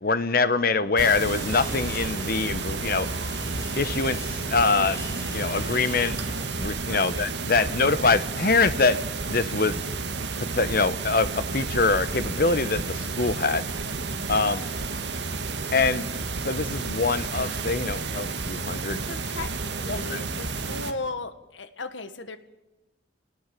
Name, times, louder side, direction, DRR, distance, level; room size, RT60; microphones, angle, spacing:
voice 1, 0.0-3.1 3.8-6.2 6.6-9.0 9.3-9.8 10.4-13.6 14.3-14.6 15.7-16.1 16.4-19.0 19.9-20.2, left 4 dB, 50° left, 13 dB, 1.0 m, -24 dB
sound 1, 1.0-20.9, right 3 dB, 65° right, 1.6 m, -31 dB
sound 2, 1.2-6.5, left 1 dB, 15° left, 5.1 m, -40 dB
voice 2, 6.9-7.2 19.1-22.4, left 3 dB, 75° left, 11 dB, 1.6 m, -36 dB
28.0 x 19.5 x 7.6 m, 1.0 s
head